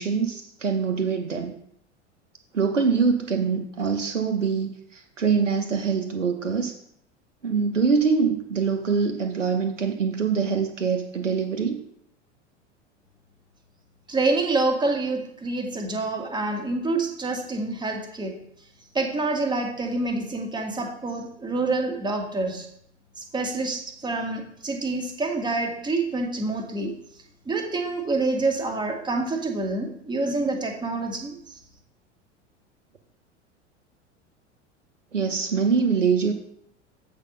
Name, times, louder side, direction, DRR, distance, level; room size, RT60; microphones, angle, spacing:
voice 1, 0.0-1.5 2.5-6.7 7.4-11.8 35.1-36.3, right 5 dB, 85° right, 5 dB, 0.8 m, -24 dB
voice 2, 14.1-18.4 18.9-22.7 23.2-27.0 27.5-31.6, right 3 dB, 10° right, 2 dB, 1.6 m, -27 dB
8.1 x 4.5 x 5.2 m, 0.72 s
figure-of-eight pair, 85°, 36 cm